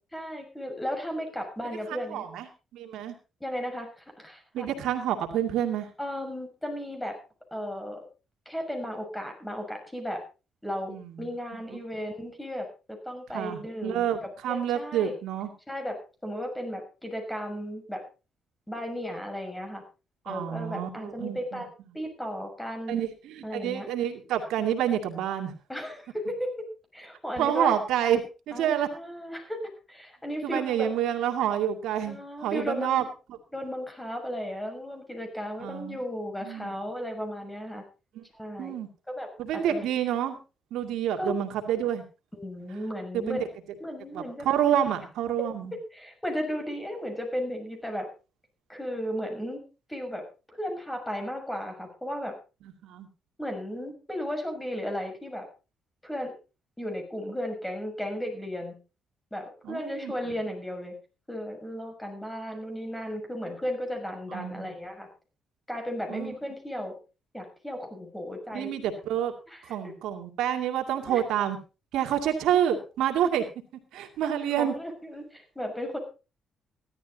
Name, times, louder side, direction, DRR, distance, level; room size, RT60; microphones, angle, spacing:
voice 1, 0.1-2.3 3.4-4.7 6.0-7.2 7.5-8.1 8.4-10.2 10.6-14.1 14.5-15.1 15.7-18.0 18.7-19.8 20.2-21.7 21.9-23.0 23.4-23.9 25.7-26.7 26.9-27.7 28.5-29.6 29.9-30.9 32.0-33.1 33.5-37.8 38.3-38.7 39.1-39.9 41.2-41.3 42.3-43.4 43.8-44.5 45.7-48.1 48.7-49.6 49.9-52.3 53.4-55.5 56.0-56.3 56.8-58.8 59.3-61.0 61.3-65.1 65.7-66.9 67.3-68.7 69.5-69.7 71.1-71.2 74.6-76.0, equal, 10° left, 4 dB, 6.5 m, -35 dB
voice 2, 1.9-2.5 2.7-3.1 4.5-5.9 10.9-11.3 13.3-15.5 20.3-21.6 22.9-25.5 27.4-28.9 30.4-33.0 35.6-36.0 36.4-36.7 38.1-38.2 38.6-38.9 39.4-40.4 40.7-42.0 43.3-43.4 44.1-45.7 52.8-53.1 59.6-60.1 64.3-64.7 66.1-66.3 68.5-69.3 69.6-71.6 71.9-73.4 73.9-74.7, right 10 dB, 85° right, 4 dB, 2.4 m, -28 dB
16.0 x 12.5 x 4.1 m, 0.32 s
cardioid pair, 90°, 0 cm